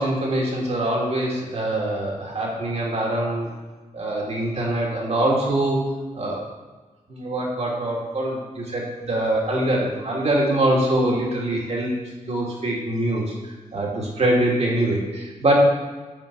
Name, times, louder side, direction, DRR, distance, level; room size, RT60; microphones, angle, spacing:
voice 1, 0.0-3.5 3.9-5.8 6.1-6.4 7.1-11.9 12.3-15.5, right 1 dB, 50° right, -3 dB, 2.7 m, -24 dB
7.4 x 4.7 x 6.0 m, 1.3 s
cardioid pair, 60°, 14 cm